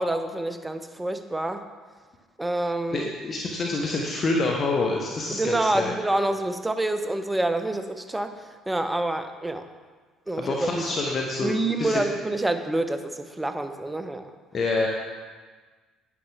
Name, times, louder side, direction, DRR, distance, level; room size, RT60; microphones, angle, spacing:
voice 1, 0.0-1.6 2.4-3.1 5.3-9.7 10.3-10.8 11.4-14.3, right 2 dB, 15° right, 8 dB, 1.0 m, -27 dB
voice 2, 2.9-5.9 10.4-12.1 14.5-14.9, left 3 dB, 45° left, 0 dB, 1.2 m, -27 dB
11.0 x 9.6 x 3.6 m, 1.4 s
hypercardioid pair, 60°, 0 cm